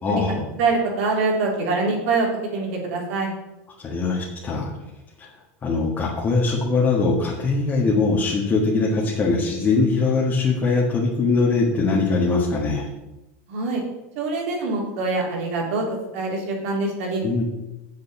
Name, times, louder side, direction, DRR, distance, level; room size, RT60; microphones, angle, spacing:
voice 1, 0.0-0.5 3.8-4.7 5.2-5.3 5.6-12.9 17.2-17.4, left 3 dB, 20° left, -4 dB, 1.8 m, -21 dB
voice 2, 0.6-3.3 13.5-13.8 14.2-15.8 16.1-17.2, right 3 dB, 65° right, -1 dB, 3.8 m, -24 dB
7.6 x 7.3 x 7.1 m, 0.99 s
supercardioid pair, 140°, 8 cm